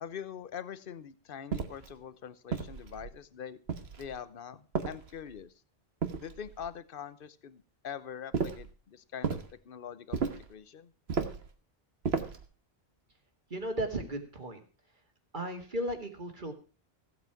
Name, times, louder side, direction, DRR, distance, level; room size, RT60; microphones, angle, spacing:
voice 1, 0.0-3.6 4.0-5.5 6.2-9.4 9.6-10.9, left 8 dB, 60° left, 15 dB, 1.0 m, -43 dB
sound 1, 1.5-1.9 2.5-3.2 3.7-4.2 4.7-5.4 6.0-6.7 8.3-8.7 9.2-9.5 10.1-10.5 11.1-11.5 12.0-12.5, right 5 dB, 75° right, 1.5 m, -34 dB
voice 2, 13.5-14.6 15.3-16.5, right 1 dB, 50° right, 5 dB, 2.2 m, -35 dB
15.5 x 8.4 x 5.9 m, 0.36 s
omnidirectional pair, 1.1 m